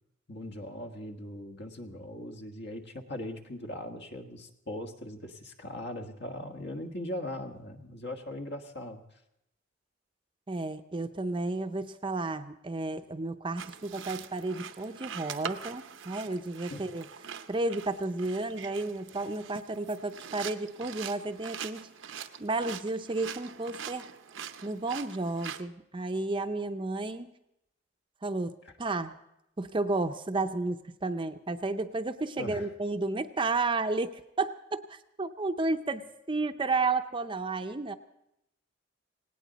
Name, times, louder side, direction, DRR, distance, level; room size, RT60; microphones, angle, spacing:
voice 1, 0.3-9.0 16.7-16.8 32.4-32.7, left 1 dB, 60° left, 4 dB, 1.5 m, -40 dB
voice 2, 10.5-17.1 17.5-21.9 22.4-24.1 24.6-27.3 28.2-29.1 29.6-34.1 34.4-37.9, right 3 dB, 25° right, 8 dB, 0.6 m, -32 dB
sound 1, 13.6-25.6, right 8 dB, 75° right, 0.7 m, -43 dB
18.0 x 18.0 x 4.0 m, 0.84 s
head